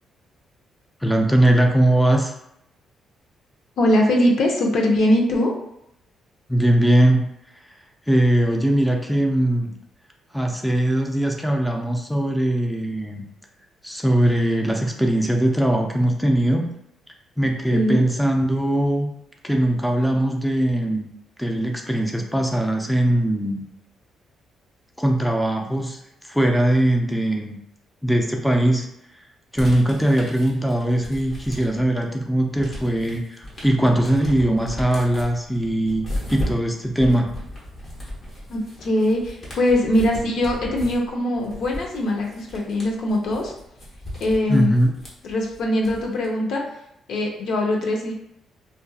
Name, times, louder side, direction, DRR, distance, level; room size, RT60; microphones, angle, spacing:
voice 1, 1.0-2.3 6.5-7.3 8.1-9.7 10.3-13.3 13.8-16.7 17.4-19.1 19.4-21.1 21.4-23.6 25.0-26.0 26.2-27.6 28.0-28.9 29.5-37.3 44.5-44.9, right 1 dB, ahead, 2 dB, 0.4 m, -20 dB
voice 2, 3.8-5.5 17.7-18.0 38.5-43.5 44.2-44.7 45.2-46.8 47.1-48.1, left 1 dB, 70° left, 0 dB, 0.6 m, -21 dB
sound 1, 29.5-32.0 32.3-46.3, left 1 dB, 40° left, 1.1 m, -35 dB
2.6 x 2.4 x 2.3 m, 0.80 s
cardioid pair, 90°, 0 cm